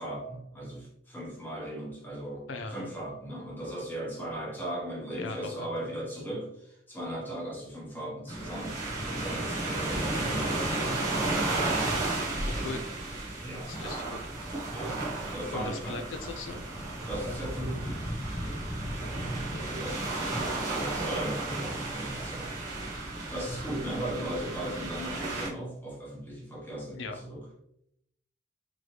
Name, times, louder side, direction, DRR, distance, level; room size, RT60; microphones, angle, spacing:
voice 1, 0.0-8.8 9.1-11.4 13.4-13.7 14.7-15.0 15.3-16.1 17.0-18.1 19.0-20.1 20.7-22.6 23.3-27.4, right 1 dB, 10° left, -4 dB, 1.2 m, -37 dB
voice 2, 2.5-2.8 5.2-5.5 12.6-12.9 13.7-14.2 15.5-16.6 27.0-27.2, left 3 dB, 80° left, 6 dB, 0.5 m, -38 dB
sound 1, 8.3-25.5, right 2 dB, 20° right, 1.2 m, -33 dB
4.0 x 3.1 x 3.2 m, 0.75 s
head